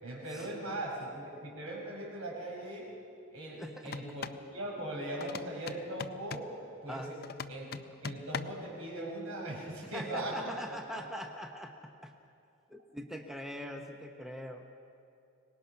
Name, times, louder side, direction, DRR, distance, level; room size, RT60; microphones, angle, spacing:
voice 1, 0.0-2.9 3.3-6.5 6.8-7.0 7.5-7.7 8.0-10.4 10.9-11.2, right 1 dB, 85° right, -2 dB, 5.2 m, -39 dB
voice 2, 3.6-3.9 6.9-7.1 9.8-12.1 12.7-14.7, equal, ahead, 3 dB, 0.8 m, -42 dB
sound 1, 3.8-4.5 5.2-6.5 7.2-8.7, left 5 dB, 45° left, 0.5 m, -41 dB
24.0 x 19.5 x 5.8 m, 2.6 s
head